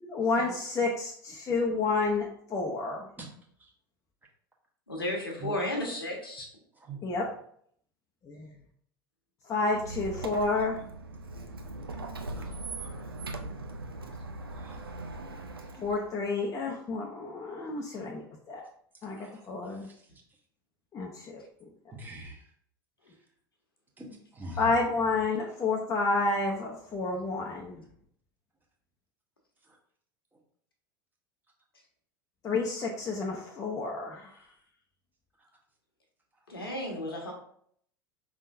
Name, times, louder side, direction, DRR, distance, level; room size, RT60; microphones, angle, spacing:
voice 1, 0.0-3.1 7.0-7.3 8.2-8.5 9.5-10.8 15.8-18.6 19.0-19.9 20.9-21.4 24.6-27.8 32.4-34.4, left 3 dB, 25° left, -1 dB, 0.7 m, -30 dB
voice 2, 4.9-6.5 36.5-37.3, left 1 dB, 80° left, 1 dB, 1.3 m, -33 dB
Squeak, 9.7-16.1, right 2 dB, 80° right, 0.5 m, -40 dB
voice 3, 12.3-13.0 14.5-14.9 19.1-19.4 19.8-19.9 21.9-22.4 24.0-24.1 24.3-24.7, right 1 dB, 15° right, -1 dB, 1.2 m, -43 dB
5.3 x 3.6 x 2.6 m, 0.63 s
figure-of-eight pair, 80°, 12 cm